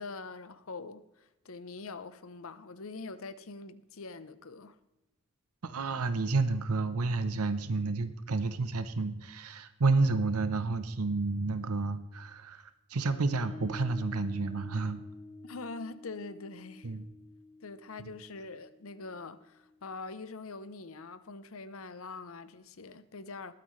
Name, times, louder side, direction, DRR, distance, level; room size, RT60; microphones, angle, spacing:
voice 1, 0.0-4.8 15.4-16.9 17.6-23.5, left 3 dB, 70° left, 0.8 m, -44 dB
voice 2, 5.6-15.0 16.8-17.0, right 3 dB, 85° right, 0.8 m, -30 dB
sound 1, 13.0-19.9, left 2 dB, 85° left, 2.4 m, -50 dB
20.5 x 9.2 x 3.2 m
head